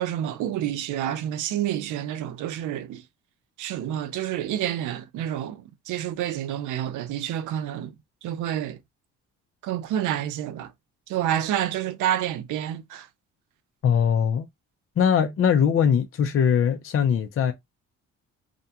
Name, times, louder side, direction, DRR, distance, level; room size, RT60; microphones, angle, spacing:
voice 1, 0.0-3.0 3.6-8.0 8.2-8.8 9.6-10.7 11.1-13.1, right 11 dB, 85° right, 0.6 m, -28 dB
voice 2, 13.8-14.5 15.0-17.5, left 7 dB, 45° left, 0.6 m, -21 dB
2.5 x 2.2 x 2.8 m
cardioid pair, 90°, 30 cm